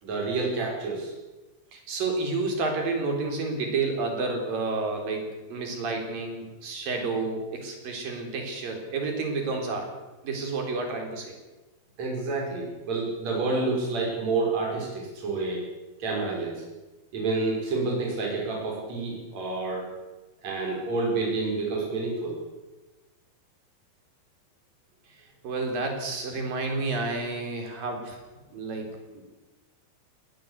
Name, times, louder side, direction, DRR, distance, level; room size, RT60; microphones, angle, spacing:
voice 1, 0.0-1.1 12.0-15.6 16.0-16.6 17.1-19.8 20.4-22.3, right 3 dB, 40° right, -2 dB, 6.6 m, -29 dB
voice 2, 1.7-9.9 10.2-11.4 25.1-28.2 28.5-29.2, right 3 dB, 60° right, 3 dB, 5.6 m, -30 dB
20.5 x 18.0 x 8.2 m, 1.2 s
omnidirectional pair, 4.7 m